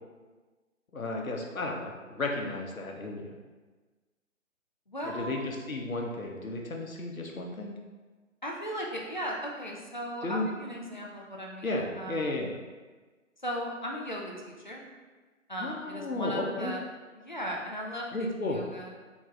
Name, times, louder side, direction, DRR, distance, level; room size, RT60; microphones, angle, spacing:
voice 1, 0.9-3.3 5.0-7.7 10.2-10.5 11.6-12.5 15.6-16.7 18.1-18.6, left 2 dB, 80° left, 1 dB, 0.8 m, -33 dB
voice 2, 4.9-5.4 8.4-11.7 12.0-12.5 13.4-14.8 15.5-16.8 17.2-18.9, equal, 35° left, -1 dB, 0.4 m, -37 dB
3.9 x 2.4 x 3.9 m, 1.3 s
figure-of-eight pair, 145°, 41 cm